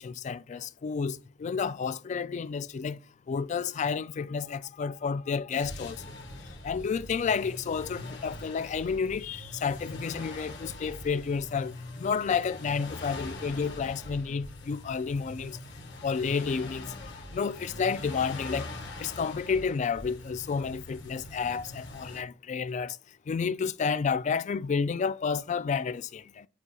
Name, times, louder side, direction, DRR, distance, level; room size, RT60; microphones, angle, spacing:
voice 1, 0.0-3.0 3.3-6.0 6.6-15.6 16.0-16.9 17.3-18.7 19.0-23.0 23.3-26.5, left 5 dB, 40° left, 0.3 m, -30 dB
sound 1, 5.5-22.2, left 2 dB, 65° left, 1.5 m, -43 dB
10.5 x 4.2 x 2.3 m
head